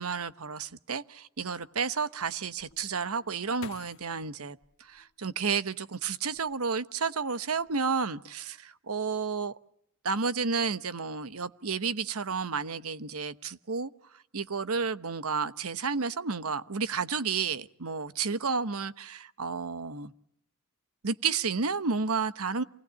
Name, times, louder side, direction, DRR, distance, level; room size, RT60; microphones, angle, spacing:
voice 1, 0.0-9.5 10.0-13.9 14.3-20.1 21.0-22.6, right 5 dB, 85° right, 1.1 m, -31 dB
sound 1, 2.6-5.7 6.2-7.0 7.3-7.7, left 6 dB, 75° left, 1.4 m, -51 dB
28.0 x 20.0 x 8.3 m
head